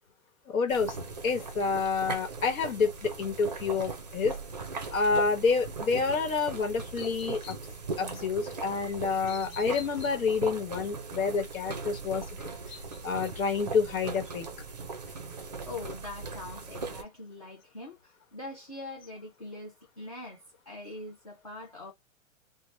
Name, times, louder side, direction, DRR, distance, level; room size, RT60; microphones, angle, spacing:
voice 1, 0.5-1.0 1.2-4.4 4.9-7.6 8.0-12.5 13.0-14.5, left 5 dB, 85° left, 1.1 m, -28 dB
sound 1, 0.7-17.0, right 4 dB, 35° right, 0.4 m, -39 dB
sound 2, 6.8-7.7 8.7-10.3 10.7-10.9 11.5-11.6 12.5-13.3 13.7-13.8 14.2-14.3, left 5 dB, 50° left, 1.1 m, -47 dB
voice 2, 15.6-21.9, left 2 dB, 30° left, 0.3 m, -43 dB
2.8 x 2.1 x 3.1 m
hypercardioid pair, 175°, 40 cm